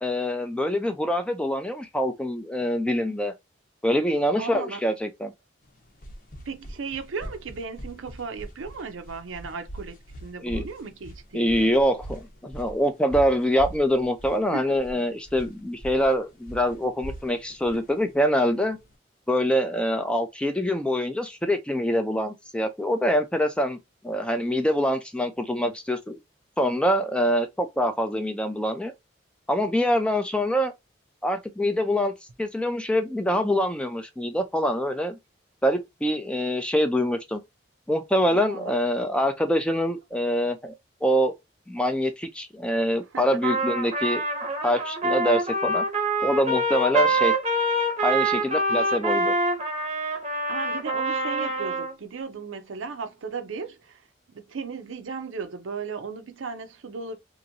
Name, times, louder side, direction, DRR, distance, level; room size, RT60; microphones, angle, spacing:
voice 1, 0.0-3.3 3.8-5.3 10.4-10.6 11.3-18.8 19.3-23.8 24.0-26.2 26.6-28.9 29.5-30.7 31.2-32.1 32.4-35.2 35.6-37.4 37.9-40.7 41.0-41.3 41.7-44.2 44.6-45.8 46.2-47.3 48.0-49.3, equal, 5° left, 0.4 m, -25 dB
voice 2, 4.4-4.8 6.5-10.0 10.2-11.7 14.5-14.7 38.2-38.7 43.1-43.4 47.0-47.2 50.5-54.0 54.3-57.2, right 5 dB, 90° right, 0.6 m, -36 dB
sound 1, 5.7-18.9, right 1 dB, 45° left, 0.8 m, -41 dB
Trumpet, 43.4-51.9, right 1 dB, 30° right, 0.7 m, -25 dB
2.9 x 2.6 x 2.5 m
head